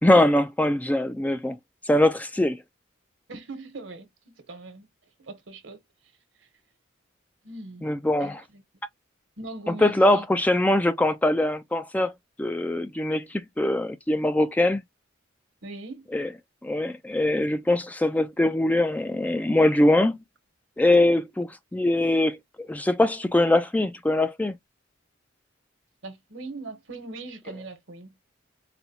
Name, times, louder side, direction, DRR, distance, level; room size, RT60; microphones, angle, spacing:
voice 1, 0.0-1.6 1.9-2.6 7.8-8.4 9.8-12.1 12.4-14.8 16.1-16.3 16.6-20.2 20.8-24.5, left 1 dB, 10° left, 0.3 m, -22 dB
voice 2, 3.3-4.9 5.2-5.8 6.4-6.5 7.4-7.9 8.2-8.6 9.4-10.3 15.6-16.1 26.0-28.2, right 2 dB, 70° right, 1.1 m, -40 dB
4.2 x 2.2 x 2.7 m
head